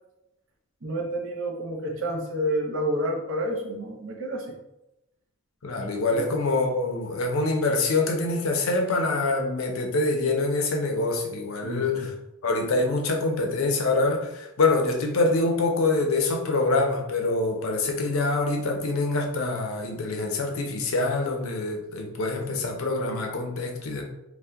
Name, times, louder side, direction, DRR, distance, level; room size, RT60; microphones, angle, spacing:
voice 1, 0.8-4.6 6.1-6.3 11.6-12.1, equal, 60° right, 1 dB, 0.6 m, -29 dB
voice 2, 5.6-12.1 12.4-24.0, left 3 dB, 70° left, 2 dB, 0.5 m, -25 dB
2.7 x 2.1 x 3.4 m, 0.92 s
head